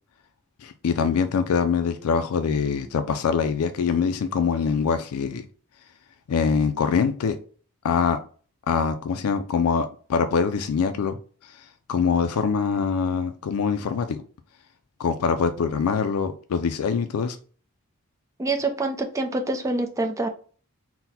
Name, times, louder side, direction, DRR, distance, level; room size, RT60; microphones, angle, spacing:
voice 1, 0.6-5.5 6.3-7.4 7.8-8.2 8.7-11.2 11.4-14.2 15.0-17.4, left 6 dB, 80° left, 9 dB, 0.4 m, -24 dB
voice 2, 18.4-20.3, right 2 dB, 15° right, 4 dB, 0.4 m, -26 dB
4.0 x 2.1 x 4.1 m, 0.41 s
head